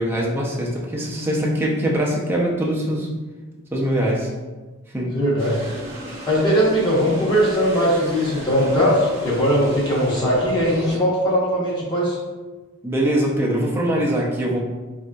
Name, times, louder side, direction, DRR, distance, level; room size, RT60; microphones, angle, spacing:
voice 1, 0.0-3.1 3.7-4.3 4.9-5.2 12.8-14.6, right 1 dB, 10° right, -4 dB, 0.5 m, -22 dB
voice 2, 5.1-5.7 6.3-12.2, equal, 20° left, -7 dB, 0.8 m, -20 dB
sound 1, 5.4-11.0, right 1 dB, 30° right, 1.1 m, -35 dB
4.0 x 2.6 x 2.2 m, 1.2 s
head